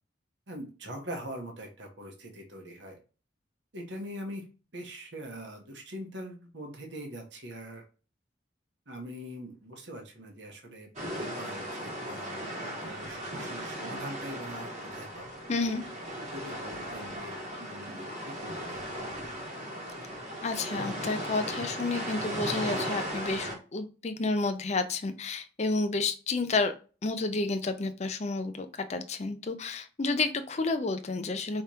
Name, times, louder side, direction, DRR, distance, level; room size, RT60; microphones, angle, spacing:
voice 1, 0.5-3.0 3.7-4.4 4.7-7.8 8.9-10.9 11.2-15.2 16.2-18.8, equal, 70° right, 2 dB, 1.3 m, -42 dB
sound 1, 11.0-23.6, equal, 35° right, 1.6 m, -37 dB
voice 2, 15.5-15.8 20.4-26.7 27.0-31.6, left 3 dB, 35° left, 8 dB, 0.5 m, -30 dB
4.7 x 3.4 x 2.8 m, 0.34 s
head